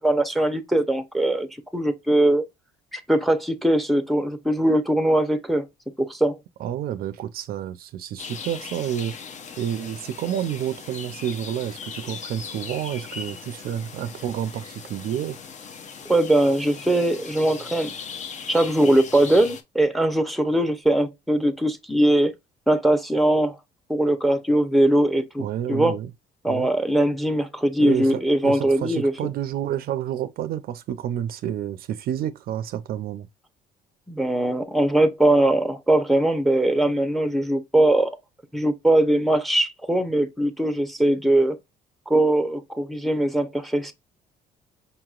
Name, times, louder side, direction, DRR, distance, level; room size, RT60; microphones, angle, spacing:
voice 1, 0.0-1.5 1.7-2.4 2.9-5.6 6.0-6.4 16.1-17.9 18.5-22.3 22.7-23.6 23.9-25.4 25.7-25.9 26.4-29.1 34.1-38.1 38.5-41.6 42.1-43.9, right 1 dB, ahead, 0.7 m, -21 dB
voice 2, 6.6-9.1 9.6-15.4 25.4-26.1 26.5-26.7 27.8-33.3, right 10 dB, 60° right, 0.5 m, -29 dB
sound 1, 8.2-19.6, left 6 dB, 45° left, 0.7 m, -39 dB
5.4 x 2.9 x 2.4 m
cardioid pair, 110°, 17 cm